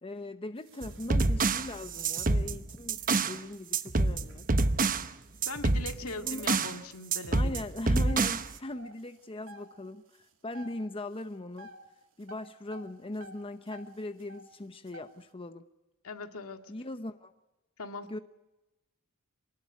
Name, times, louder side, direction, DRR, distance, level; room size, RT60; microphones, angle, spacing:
voice 1, 0.0-4.4 6.0-6.5 7.3-11.7 12.2-15.6 16.7-17.3 18.1-18.2, left 1 dB, 25° left, 9 dB, 0.9 m, -40 dB
sound 1, 0.6-6.7 7.0-7.1 7.5-9.7 10.0-10.8 11.0-11.9 12.2-14.5 14.8-15.3, equal, 60° right, 3.0 m, -52 dB
sound 2, 0.8-3.4 3.7-5.1 5.4-6.8 7.1-8.5, right 3 dB, 40° right, 1.0 m, -27 dB
voice 2, 5.5-7.6 16.0-16.7 17.8-18.1, left 3 dB, 70° left, 6 dB, 2.0 m, -40 dB
25.0 x 19.5 x 9.7 m, 1.0 s
head